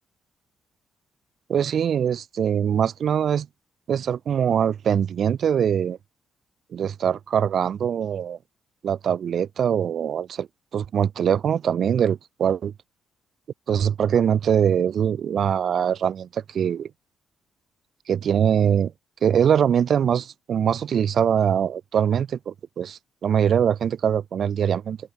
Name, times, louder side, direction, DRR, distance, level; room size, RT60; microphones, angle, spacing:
voice 1, 1.5-3.5 3.9-6.0 6.7-8.4 8.8-10.5 10.7-12.7 13.7-16.9 18.1-18.9 19.2-25.0, right 8 dB, 65° right, 1.5 m, -22 dB
open air
hypercardioid pair, 50°, 0 cm